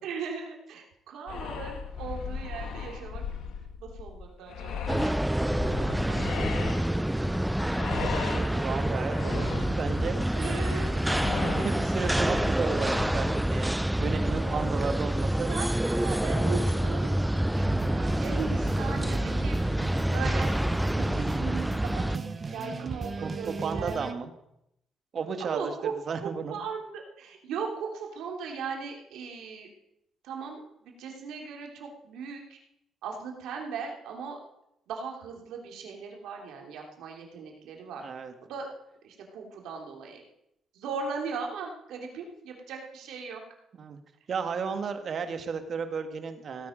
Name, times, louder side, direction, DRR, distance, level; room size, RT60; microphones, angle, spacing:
voice 1, 0.0-3.2 3.8-7.4 10.3-11.1 15.5-19.8 20.1-20.5 20.8-22.2 22.5-24.1 25.4-25.9 26.2-29.7 30.2-32.6 33.0-34.4 34.9-38.0 38.4-38.7 39.0-40.2 40.7-43.4, right 5 dB, 85° right, 1 dB, 3.0 m, -38 dB
sound 1, 1.3-13.5, left 6 dB, 75° left, 1.5 m, -37 dB
sound 2, 4.9-22.2, right 1 dB, 5° right, 0.4 m, -27 dB
voice 2, 8.0-10.2 10.8-13.7 14.0-15.8 23.2-24.3 25.1-26.6 38.0-38.3 43.7-44.0 44.3-46.7, right 5 dB, 55° right, 7 dB, 1.8 m, -34 dB
sound 3, 17.5-24.1, right 4 dB, 35° right, 0.9 m, -36 dB
17.0 x 9.5 x 5.2 m, 0.81 s
cardioid pair, 90°, 0 cm